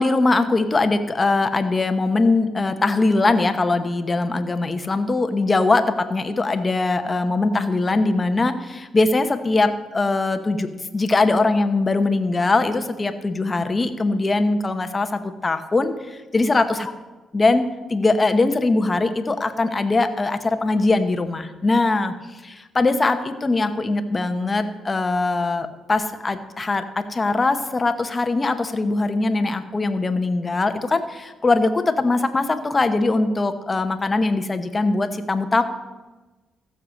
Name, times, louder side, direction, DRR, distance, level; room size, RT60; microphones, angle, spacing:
voice 1, 0.0-16.9 17.3-22.1 22.4-35.6, left 3 dB, 25° left, 8 dB, 1.1 m, -21 dB
15.0 x 6.8 x 6.6 m, 1.2 s
cardioid pair, 90°, 0 cm